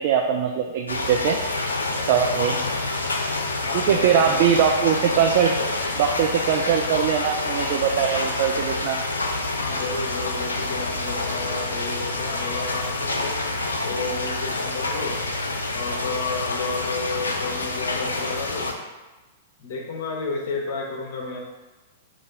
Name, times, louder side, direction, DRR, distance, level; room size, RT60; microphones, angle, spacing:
voice 1, 0.0-1.4 2.1-2.6 3.7-5.5 6.0-9.0, right 8 dB, 50° right, 2 dB, 0.4 m, -21 dB
sound 1, 0.9-18.7, left 2 dB, 80° left, 0.5 m, -27 dB
voice 2, 3.6-4.4 9.6-13.4 13.8-15.2 15.7-18.7 19.6-21.4, left 3 dB, 55° left, 0 dB, 0.9 m, -31 dB
4.1 x 2.6 x 4.8 m, 1.2 s
figure-of-eight pair, 105°, 0 cm